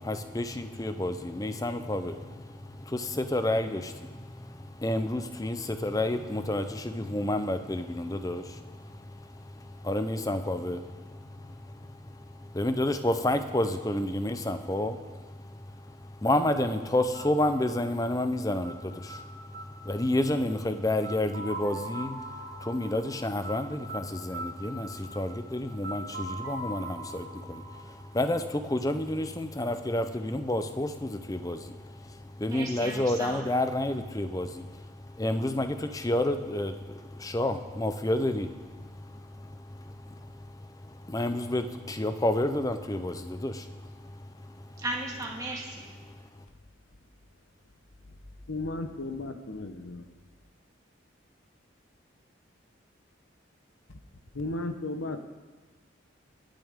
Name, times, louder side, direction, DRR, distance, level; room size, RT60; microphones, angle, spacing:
voice 1, 0.0-44.8 46.0-46.4, left 1 dB, 15° left, 0.6 m, -31 dB
sound 1, 17.1-28.9, right 1 dB, 55° right, 2.5 m, -42 dB
voice 2, 32.5-33.4 44.8-45.9, right 1 dB, 20° right, 1.9 m, -35 dB
voice 3, 48.5-50.1 54.3-55.3, left 2 dB, 90° left, 1.0 m, -34 dB
21.5 x 9.1 x 3.7 m
head